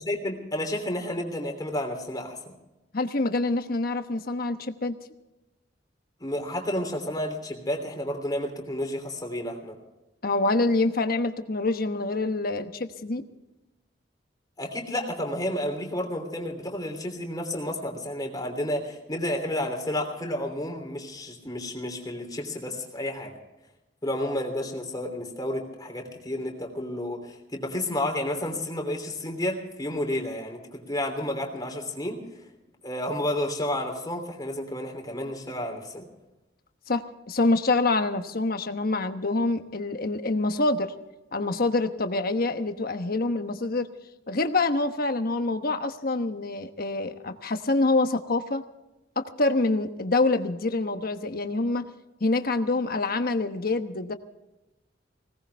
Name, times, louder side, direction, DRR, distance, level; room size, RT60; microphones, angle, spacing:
voice 1, 0.0-2.5 6.2-9.8 14.6-23.3 24.0-32.2 32.8-36.1, left 1 dB, 20° left, 3 dB, 3.1 m, -31 dB
voice 2, 2.9-4.9 10.2-13.2 36.9-40.9 41.3-43.9 44.3-48.6 49.2-51.8 52.2-54.1, left 2 dB, 55° left, 8 dB, 1.1 m, -26 dB
20.5 x 18.0 x 3.5 m, 0.99 s
head